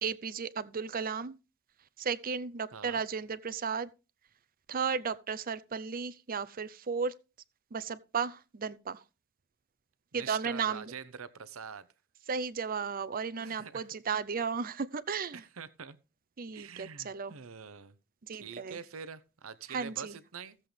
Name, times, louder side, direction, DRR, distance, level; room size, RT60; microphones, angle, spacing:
voice 1, 0.0-1.4 2.0-3.9 4.7-7.1 7.7-9.0 10.1-10.9 12.3-15.4 16.4-17.3 18.2-18.8 19.7-20.1, right 6 dB, 45° right, 0.6 m, -34 dB
voice 2, 2.7-3.0 10.1-11.9 13.4-13.9 15.3-16.0 16.5-18.0 18.3-20.6, right 6 dB, 80° right, 0.8 m, -45 dB
16.5 x 7.6 x 3.4 m
head